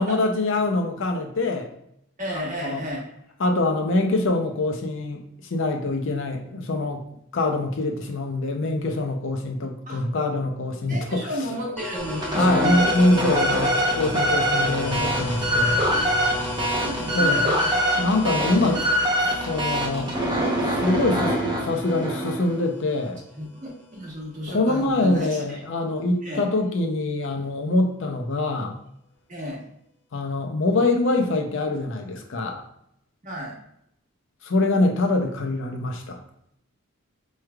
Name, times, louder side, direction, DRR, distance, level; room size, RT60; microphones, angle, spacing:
voice 1, 0.0-1.7 2.3-2.8 3.4-5.2 5.5-7.0 7.3-11.3 12.4-15.8 17.1-17.5 18.0-18.8 19.4-20.1 20.7-23.2 24.5-28.8 30.1-32.6 34.4-36.2, left 2 dB, 60° left, 2 dB, 0.5 m, -24 dB
voice 2, 2.2-3.0 9.9-10.0 10.9-13.0 15.8-17.7 18.3-18.9 23.3-25.6 26.2-26.4 29.3-29.6 33.2-33.6, equal, 35° right, -3 dB, 1.1 m, -32 dB
sound 1, 11.8-23.2, left 2 dB, 5° left, 0.4 m, -33 dB
sound 2, 12.0-22.6, equal, 20° right, 0.7 m, -24 dB
4.6 x 3.2 x 2.3 m, 0.74 s
head